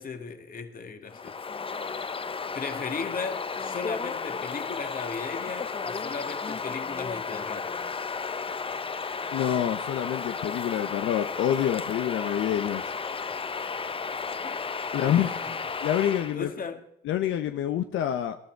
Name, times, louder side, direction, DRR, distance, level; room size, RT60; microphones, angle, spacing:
voice 1, 0.0-1.4 2.5-7.7 14.4-15.6 16.3-16.8, left 5 dB, 45° left, 2.0 m, -37 dB
Bird vocalization bird call bird song, 1.1-16.4, left 5 dB, 25° left, 0.7 m, -33 dB
voice 2, 9.3-12.9 14.9-15.3 15.8-16.5 17.0-18.4, left 10 dB, 85° left, 0.9 m, -27 dB
21.5 x 11.5 x 4.7 m
cardioid pair, 90°, 20 cm